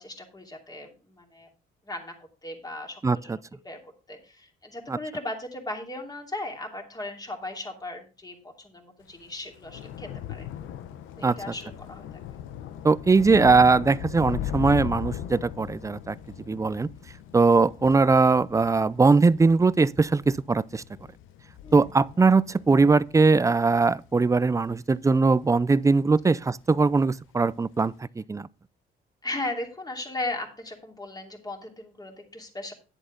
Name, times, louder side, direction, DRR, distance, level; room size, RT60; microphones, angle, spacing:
voice 1, 0.0-1.5 1.9-2.1 2.4-10.5 11.2-12.1 16.5-16.8 21.6-21.9 26.2-26.4 29.2-32.7, left 2 dB, 20° left, 2.7 m, -37 dB
voice 2, 3.0-3.4 4.9-5.0 11.2-11.4 12.8-16.2 16.5-16.9 17.3-20.8 21.7-28.5, right 4 dB, 15° right, 0.4 m, -21 dB
Thunder / Rain, 9.1-25.7 26.0-26.5 26.7-26.9, left 10 dB, 90° left, 0.8 m, -39 dB
10.0 x 7.9 x 3.8 m
cardioid pair, 90°, 20 cm